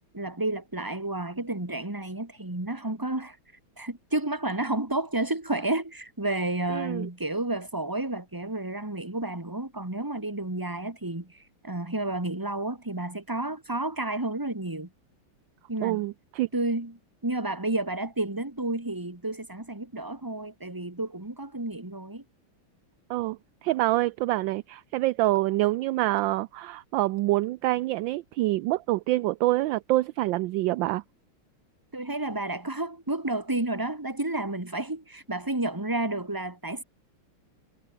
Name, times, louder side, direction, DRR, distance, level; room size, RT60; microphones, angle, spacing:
voice 1, 0.1-3.4 3.8-14.9 15.7-16.0 16.5-22.2 31.9-36.8, right 2 dB, 10° right, 2.5 m, -31 dB
voice 2, 6.7-7.1 15.8-16.5 23.1-31.0, right 17 dB, 75° right, 1.2 m, -26 dB
omnidirectional pair, 2.4 m